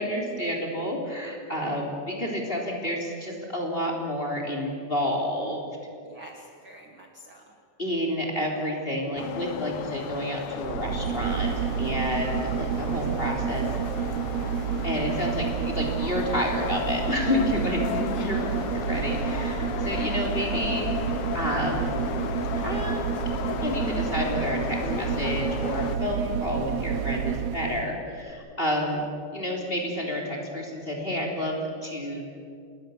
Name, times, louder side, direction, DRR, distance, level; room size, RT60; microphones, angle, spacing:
voice 1, 0.0-5.6 7.8-13.7 14.8-20.9 21.3-21.9 22.5-23.0 23.6-29.1 29.3-32.2, left 1 dB, 15° left, 1 dB, 3.5 m, -30 dB
voice 2, 6.0-7.4 18.1-18.4 20.0-20.6, right 1 dB, 45° right, 2 dB, 2.0 m, -47 dB
sound 1, 9.2-26.0, left 12 dB, 75° left, 2.0 m, -35 dB
sound 2, 10.5-27.9 28.3-28.4, right 9 dB, 85° right, 1.5 m, -29 dB
27.0 x 21.5 x 7.2 m, 2.4 s
omnidirectional pair, 4.0 m